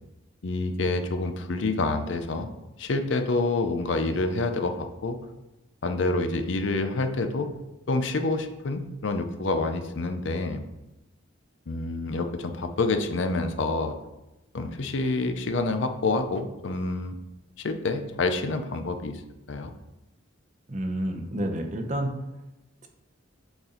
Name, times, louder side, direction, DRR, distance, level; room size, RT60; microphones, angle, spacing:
voice 1, 0.4-2.5 2.8-5.2 5.8-7.5 7.9-10.6 11.7-14.0 14.5-17.1 17.6-19.2 19.5-19.7, left 3 dB, 65° left, 7 dB, 0.5 m, -27 dB
voice 2, 20.7-22.2, right 1 dB, 35° right, 4 dB, 0.7 m, -29 dB
6.9 x 4.2 x 3.8 m, 0.99 s
head